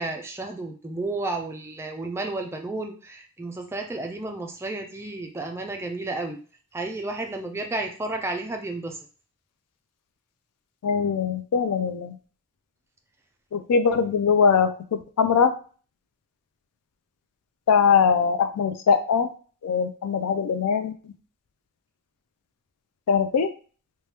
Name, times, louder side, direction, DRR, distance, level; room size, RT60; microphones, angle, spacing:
voice 1, 0.0-6.4 6.7-9.0, right 2 dB, 10° right, 3 dB, 0.3 m, -32 dB
voice 2, 10.8-12.2 13.5-14.7 15.2-15.5 17.7-19.3 19.6-20.9 23.1-23.5, left 6 dB, 85° left, 10 dB, 0.4 m, -21 dB
3.2 x 2.2 x 2.8 m, 0.39 s
head